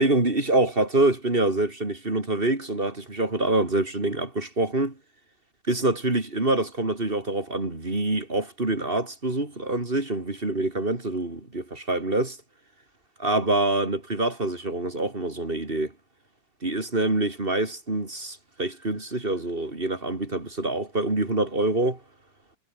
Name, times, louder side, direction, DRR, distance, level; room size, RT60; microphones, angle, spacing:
voice 1, 0.0-5.0 5.7-12.4 13.2-15.9 16.6-22.0, right 2 dB, 30° right, 3.9 m, -25 dB
omnidirectional pair, 2.0 m